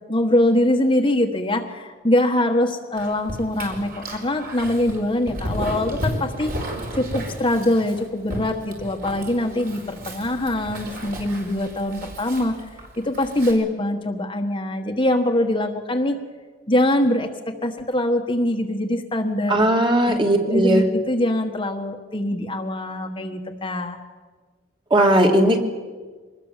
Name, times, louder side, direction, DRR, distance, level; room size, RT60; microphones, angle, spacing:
voice 1, 0.1-6.5 6.9-12.6 13.0-16.2 16.7-19.6 20.0-20.2 20.5-24.0, left 1 dB, 25° left, 4 dB, 1.3 m, -23 dB
Dog, 3.0-13.5, equal, 50° right, 4.8 m, -33 dB
voice 2, 19.5-20.8 24.9-25.6, right 1 dB, 25° right, 3 dB, 2.5 m, -17 dB
24.5 x 20.5 x 7.4 m, 1.4 s
head